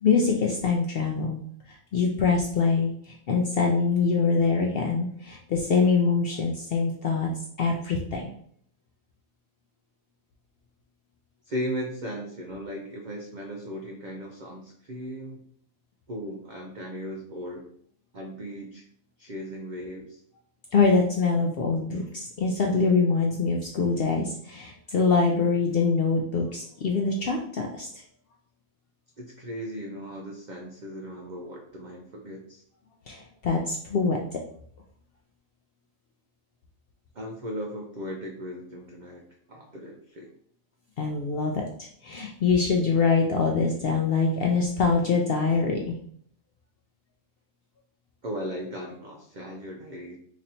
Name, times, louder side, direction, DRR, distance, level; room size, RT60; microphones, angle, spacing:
voice 1, 0.0-1.4 1.7-7.3 7.6-8.3 20.7-28.0 33.1-34.2 41.0-46.0, left 4 dB, 70° left, 0 dB, 0.5 m, -24 dB
voice 2, 11.4-15.4 16.1-17.7 18.1-18.9 19.2-20.2 29.2-32.6 37.1-39.2 39.5-40.3 48.2-50.2, equal, 85° right, 0 dB, 0.4 m, -37 dB
3.0 x 2.6 x 4.1 m, 0.63 s
omnidirectional pair, 1.5 m